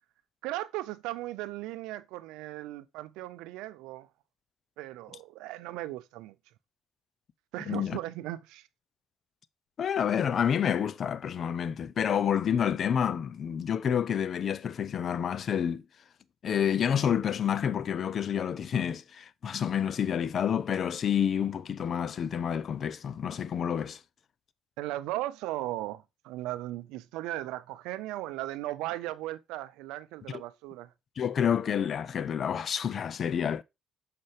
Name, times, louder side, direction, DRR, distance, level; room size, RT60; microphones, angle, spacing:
voice 1, 0.4-4.1 4.8-6.3 7.5-8.7 24.8-30.9, right 16 dB, 80° right, 0.5 m, -37 dB
voice 2, 7.7-8.0 9.8-15.8 16.4-24.0 31.2-33.6, left 8 dB, 55° left, 0.5 m, -29 dB
6.7 x 5.4 x 3.2 m
supercardioid pair, 65°, 0 cm